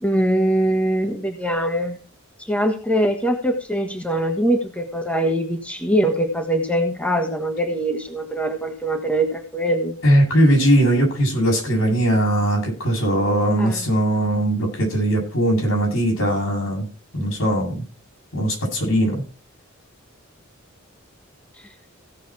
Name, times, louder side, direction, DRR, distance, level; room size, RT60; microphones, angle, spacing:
voice 1, 0.0-2.0 2.5-10.0 13.6-13.9, right 1 dB, 5° left, 3 dB, 1.5 m, -22 dB
voice 2, 10.0-16.9 17.1-17.8 18.3-19.2, right 1 dB, 75° left, 0 dB, 7.8 m, -19 dB
16.5 x 7.0 x 4.4 m, 0.37 s
head